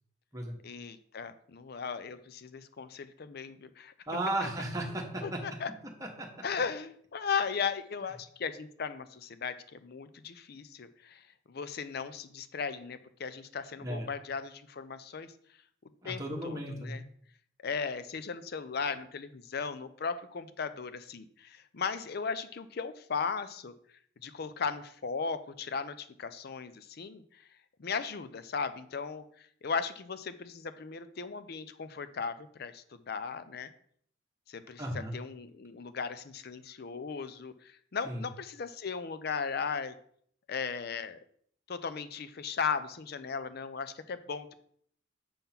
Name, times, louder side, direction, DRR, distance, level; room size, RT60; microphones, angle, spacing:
voice 1, 0.6-3.9 5.2-5.7 6.4-15.3 16.0-17.0 17.6-23.7 24.2-27.2 27.8-33.7 34.5-39.9 40.5-41.2 41.7-44.5, left 5 dB, 50° left, 12 dB, 0.5 m, -37 dB
voice 2, 4.1-5.6 6.0-6.3 13.8-14.1 16.0-17.0 34.8-35.1 38.0-38.2, right 1 dB, 15° right, 0 dB, 1.3 m, -35 dB
6.9 x 3.7 x 5.8 m, 0.62 s
head